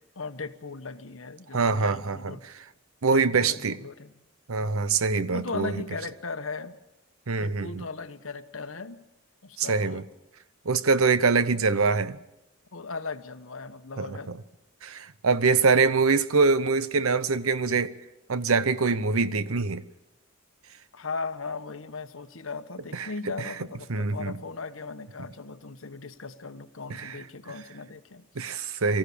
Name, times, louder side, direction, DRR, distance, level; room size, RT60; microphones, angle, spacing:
voice 1, 0.0-2.4 3.1-4.2 4.6-5.0 5.3-6.8 7.3-9.0 9.4-10.1 12.7-14.3 20.9-28.8, left 4 dB, 65° left, 1.2 m, -38 dB
voice 2, 1.5-2.4 3.0-3.8 4.5-5.7 7.3-7.8 9.6-10.0 10.7-12.2 14.0-14.2 14.8-17.9 18.3-19.8 22.9-23.1 23.9-24.3 27.0-27.1 28.4-29.0, right 4 dB, 85° right, 0.8 m, -24 dB
23.0 x 15.0 x 8.5 m
head